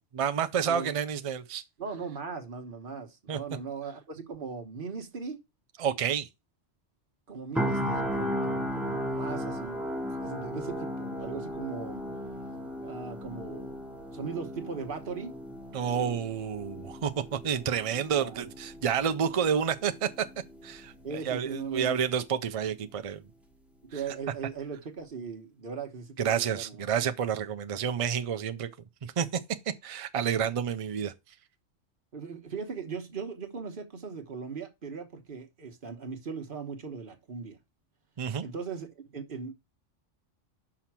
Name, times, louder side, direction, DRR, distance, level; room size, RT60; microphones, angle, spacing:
voice 1, 0.1-1.6 3.3-3.4 5.8-6.3 15.7-20.3 20.6-23.2 23.9-24.0 26.2-28.7 29.0-29.4 29.7-31.1 38.2-38.5, right 8 dB, 60° right, 0.3 m, -29 dB
voice 2, 1.8-5.4 7.3-9.8 10.2-12.1 12.8-13.8 14.1-15.4 18.2-18.4 21.0-22.0 23.8-26.9 32.1-37.6 38.4-39.5, right 5 dB, 45° right, 1.2 m, -39 dB
sound 1, 7.5-21.5 21.9-22.1, equal, ahead, 1.1 m, -36 dB
5.8 x 4.9 x 5.9 m
omnidirectional pair, 1.3 m